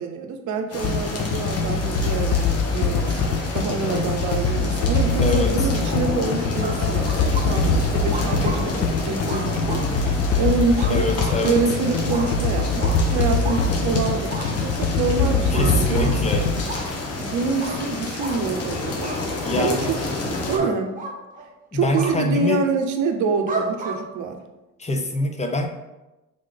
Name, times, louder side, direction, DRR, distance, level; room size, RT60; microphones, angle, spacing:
voice 1, 0.0-11.0 11.4-16.1 17.2-19.1 19.5-20.0 20.5-20.9 21.7-24.4, right 4 dB, 75° right, 6 dB, 0.7 m, -26 dB
sound 1, 0.7-20.6, left 3 dB, 55° left, 1.1 m, -29 dB
sound 2, 0.8-16.8, left 4 dB, 75° left, 0.5 m, -23 dB
voice 2, 5.2-5.7 10.9-11.6 15.5-16.5 19.4-20.0 20.6-20.7 21.7-22.7 24.8-25.7, left 2 dB, 25° left, 4 dB, 0.6 m, -25 dB
sound 3, 6.6-7.4 8.1-8.6 9.3-9.9 10.8-10.9 11.2-11.4 12.1-12.3 12.8-13.0 13.4-13.6 14.3-14.5 15.5-16.1 16.7-16.8 17.6-17.8 18.2-18.4 19.0-19.2 20.5-20.7 20.9-21.5 21.9-22.1 23.5-24.0, right 3 dB, 25° right, 1.0 m, -32 dB
3.8 x 3.3 x 3.8 m, 1.0 s
cardioid pair, 90°, 30 cm